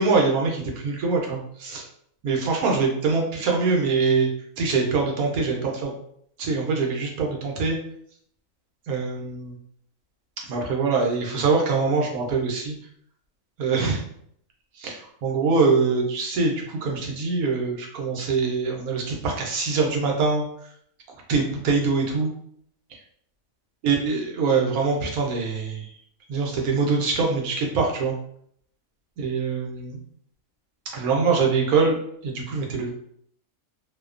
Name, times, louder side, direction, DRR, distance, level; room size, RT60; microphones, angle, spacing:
voice 1, 0.0-1.8 2.2-4.3 4.6-5.9 6.4-7.8 8.9-9.6 10.5-12.7 13.6-14.0 14.8-20.4 21.3-22.3 23.8-25.9 26.3-28.2 29.2-30.0 30.9-32.0 32.2-32.9, right 4 dB, 85° right, 0 dB, 1.1 m, -23 dB
2.7 x 2.1 x 2.3 m, 0.67 s
omnidirectional pair, 1.5 m